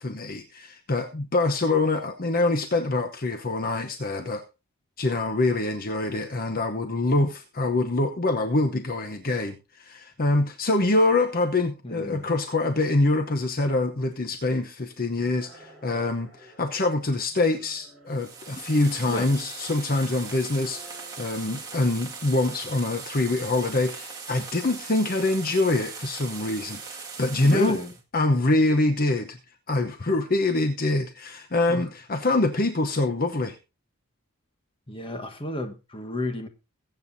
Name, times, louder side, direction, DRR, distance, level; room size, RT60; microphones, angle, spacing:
voice 1, 0.0-4.4 5.0-27.8 28.1-29.4 29.7-33.6, left 2 dB, 40° left, 6 dB, 0.9 m, -25 dB
voice 2, 11.8-12.3 19.1-19.3 27.4-27.9 31.7-31.9 34.9-36.5, left 2 dB, 25° left, 7 dB, 1.3 m, -31 dB
sound 1, 15.2-16.9 17.3-18.7 19.1-20.2 20.6-21.8 22.0-22.8, right 2 dB, ahead, 4.6 m, -53 dB
sound 2, 18.1-28.0, right 5 dB, 15° right, 1.9 m, -40 dB
22.0 x 7.9 x 2.7 m, 0.28 s
head